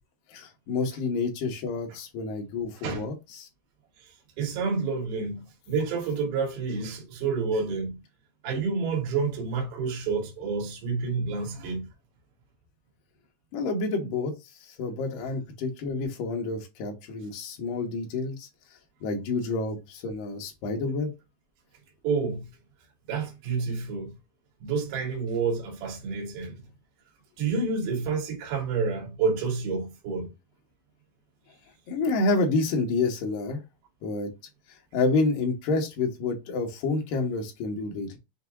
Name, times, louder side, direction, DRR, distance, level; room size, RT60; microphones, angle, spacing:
voice 1, 0.3-3.5 13.5-18.5 19.0-21.1 31.9-33.6 34.0-34.3 34.9-38.2, left 3 dB, 70° left, 2.3 m, -29 dB
voice 2, 4.0-8.0 8.4-11.9 22.0-22.5 23.1-24.2 24.6-26.6 27.4-30.3, right 4 dB, 70° right, 3.1 m, -29 dB
6.7 x 2.7 x 2.3 m
omnidirectional pair, 4.7 m